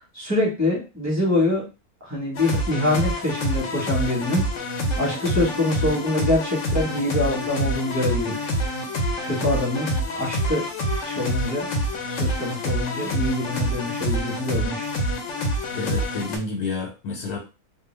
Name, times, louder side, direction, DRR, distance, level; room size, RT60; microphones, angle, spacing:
voice 1, 0.1-1.7 2.1-4.4 5.0-8.5 9.2-10.6 11.0-11.7 12.1-14.9, left 2 dB, 10° right, -3 dB, 1.1 m, -25 dB
sound 1, 2.3-16.4, equal, 65° left, 0.9 m, -27 dB
voice 2, 15.7-17.4, left 3 dB, 85° left, 0 dB, 1.2 m, -29 dB
2.6 x 2.2 x 3.2 m, 0.31 s
omnidirectional pair, 1.6 m